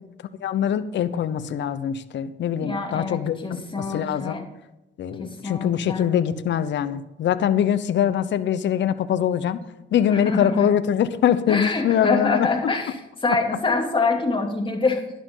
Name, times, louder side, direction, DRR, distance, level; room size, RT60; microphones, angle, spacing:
voice 1, 0.4-3.4 3.8-4.4 5.0-9.6 9.9-12.5 13.3-13.4, left 9 dB, 65° left, 13 dB, 0.9 m, -23 dB
voice 2, 2.6-4.4 5.2-6.1 10.1-10.7 11.5-15.2, left 3 dB, 25° left, 2 dB, 2.8 m, -25 dB
11.5 x 11.5 x 3.9 m, 0.95 s
cardioid pair, 90°, 20 cm